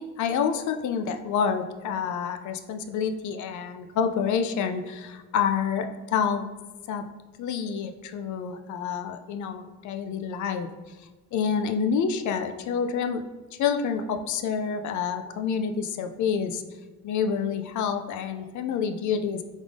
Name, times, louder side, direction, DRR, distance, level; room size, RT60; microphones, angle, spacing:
voice 1, 0.0-6.5 6.9-7.0 7.4-10.7 11.3-13.2 13.6-16.6 17.0-19.4, left 6 dB, 75° left, 6 dB, 0.5 m, -28 dB
3.6 x 3.6 x 3.4 m, 1.2 s
cardioid pair, 90°, 30 cm